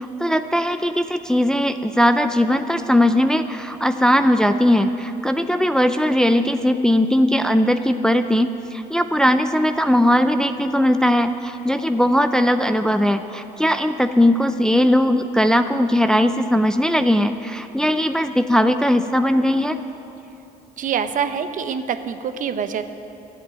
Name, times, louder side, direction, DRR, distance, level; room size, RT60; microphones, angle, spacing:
voice 1, 0.0-19.8, equal, 5° left, 8 dB, 0.4 m, -19 dB
voice 2, 20.8-22.8, right 7 dB, 50° right, 10 dB, 0.7 m, -25 dB
13.0 x 8.1 x 9.5 m, 2.8 s
cardioid pair, 110°, 17 cm